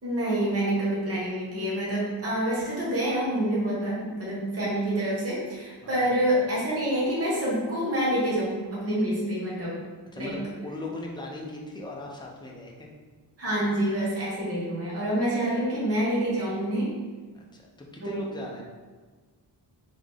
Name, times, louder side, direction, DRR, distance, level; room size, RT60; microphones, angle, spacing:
voice 1, 0.0-9.8 10.2-10.3 13.4-17.0 18.0-18.2, right 1 dB, 35° right, -7 dB, 1.5 m, -27 dB
voice 2, 10.1-12.9 17.3-18.6, left 2 dB, 10° left, -2 dB, 0.7 m, -38 dB
3.8 x 3.6 x 3.5 m, 1.4 s
wide cardioid pair, 130°, 42 cm